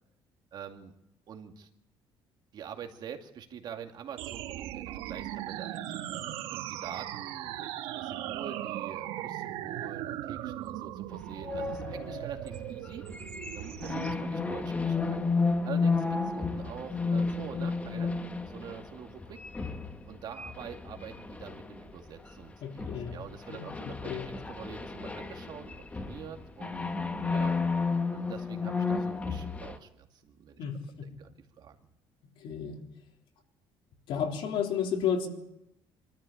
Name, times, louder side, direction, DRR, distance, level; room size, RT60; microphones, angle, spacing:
voice 1, 0.5-0.9 1.3-1.7 2.5-13.0 13.5-15.3 15.6-18.2 18.5-19.4 20.1-26.8 27.3-27.6 28.1-30.6 31.1-31.8, right 8 dB, 50° right, 4 dB, 2.4 m, -45 dB
sound 1, 4.2-14.2, right 12 dB, 85° right, 1.3 m, -38 dB
sound 2, 11.4-22.4 22.8-29.8, left 4 dB, 15° left, 1.5 m, -32 dB
voice 2, 22.6-23.2 23.5-23.7 24.0-24.3 30.6-31.1 32.4-32.8 34.1-35.3, left 7 dB, 65° left, 2 dB, 3.7 m, -32 dB
25.5 x 13.5 x 8.6 m, 0.82 s
cardioid pair, 130°, 9 cm